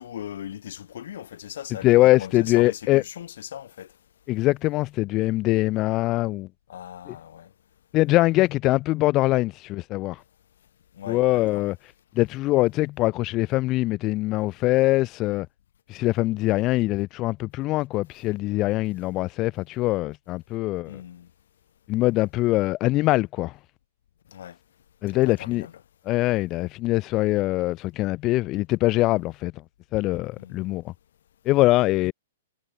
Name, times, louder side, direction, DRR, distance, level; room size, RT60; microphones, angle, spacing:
voice 1, 0.0-3.9 6.7-7.5 10.9-11.6 20.8-21.3 24.3-24.6 25.1-25.7 30.4-30.7, left 10 dB, 70° left, 1.6 m, -39 dB
voice 2, 1.8-3.0 4.3-6.5 7.1-7.2 7.9-10.2 11.1-11.8 12.2-15.5 15.9-21.0 21.9-23.6 25.0-25.7 26.1-29.5 29.9-30.9 31.4-32.1, left 18 dB, 35° left, 0.6 m, -23 dB
hypercardioid pair, 125°, 0 cm